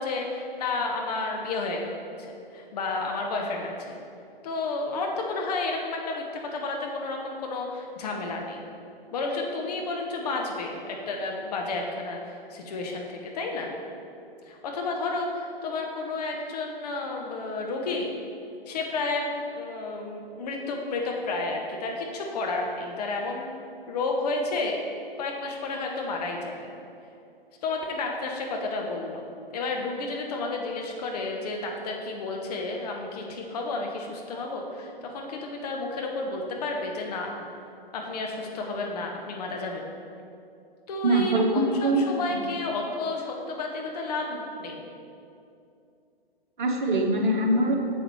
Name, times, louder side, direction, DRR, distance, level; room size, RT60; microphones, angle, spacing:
voice 1, 0.0-1.9 2.3-4.0 4.4-6.2 6.5-8.6 9.1-13.7 14.5-18.1 18.7-23.5 23.9-24.8 25.2-26.7 27.6-29.2 29.5-37.3 37.9-39.9 40.9-44.9, left 3 dB, 45° left, 1 dB, 1.0 m, -31 dB
voice 2, 41.0-42.0 42.3-42.4 46.6-47.8, right 2 dB, 55° right, 1 dB, 1.2 m, -23 dB
9.7 x 7.1 x 3.2 m, 2.6 s
figure-of-eight pair, 115°, 29 cm